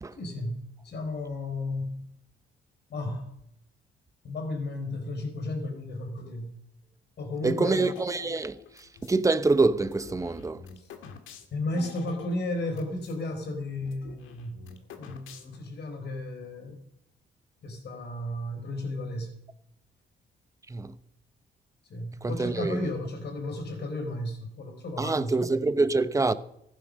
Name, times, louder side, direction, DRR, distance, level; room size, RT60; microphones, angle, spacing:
voice 1, 0.2-2.0 2.9-3.3 4.2-6.5 7.2-7.8 10.8-10.9 11.5-14.6 14.9-16.8 17.6-19.3 21.9-25.5, left 1 dB, 60° left, 4.2 m, -34 dB
voice 2, 7.4-8.6 9.0-10.6 20.7-20.9 22.2-22.8 25.0-26.3, right 3 dB, 15° right, 0.8 m, -25 dB
sound 1, 7.8-9.2 9.8-13.2 13.5-13.6 13.8-15.8, left 8 dB, 85° left, 1.8 m, -47 dB
15.0 x 10.0 x 6.5 m
cardioid pair, 90°, 20 cm